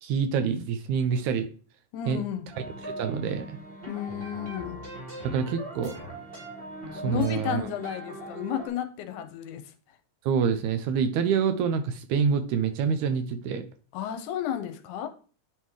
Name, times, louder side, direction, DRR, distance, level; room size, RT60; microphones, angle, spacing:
voice 1, 0.0-1.5 2.1-2.2 2.8-3.6 5.2-6.0 6.9-7.7 10.3-13.6, right 6 dB, 80° right, 1.8 m, -26 dB
voice 2, 1.9-2.5 3.9-4.8 7.0-9.7 13.9-15.1, left 10 dB, 85° left, 2.1 m, -32 dB
sound 1, 2.5-8.7, right 1 dB, 30° right, 1.0 m, -40 dB
9.8 x 3.6 x 3.1 m
omnidirectional pair, 3.6 m